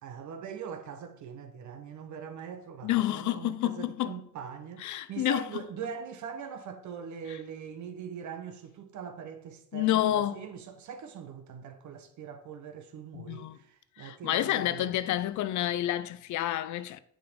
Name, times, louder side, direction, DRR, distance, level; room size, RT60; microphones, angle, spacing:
voice 1, 0.0-14.9, right 7 dB, 70° right, 1.0 m, -42 dB
voice 2, 2.8-4.2 4.8-5.4 7.3-7.4 9.7-10.4 13.1-13.6 14.0-17.0, left 13 dB, 75° left, 0.5 m, -29 dB
6.9 x 3.8 x 5.1 m
cardioid pair, 90°, 30 cm